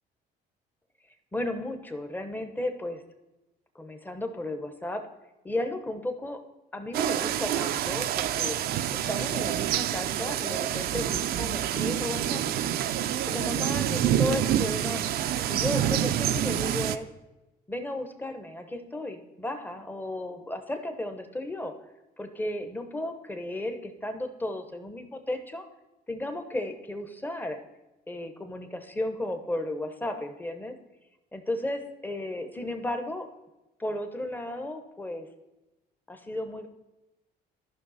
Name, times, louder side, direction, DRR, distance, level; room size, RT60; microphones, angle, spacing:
voice 1, 1.3-3.0 3.7-5.1 5.4-6.4 6.7-8.6 8.9-12.5 13.2-15.0 15.5-17.1 17.7-21.8 22.2-25.6 26.1-27.6 28.1-30.8 31.3-33.3 33.8-35.3 36.1-36.7, left 1 dB, 10° left, 8 dB, 0.9 m, -34 dB
sound 1, 6.9-17.0, right 11 dB, 65° right, 0.5 m, -27 dB
13.0 x 5.5 x 4.1 m, 1.0 s
cardioid pair, 110°, 17 cm